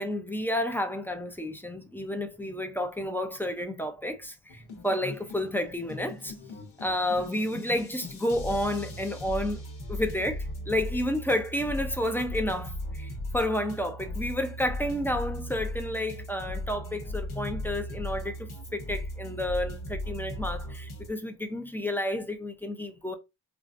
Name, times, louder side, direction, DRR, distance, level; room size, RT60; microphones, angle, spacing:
voice 1, 0.0-6.3 6.8-9.6 9.9-23.2, left 1 dB, 5° left, 0.4 m, -31 dB
sound 1, 4.5-21.1, left 1 dB, 75° left, 1.1 m, -37 dB
4.6 x 2.4 x 2.5 m
wide cardioid pair, 110°, 48 cm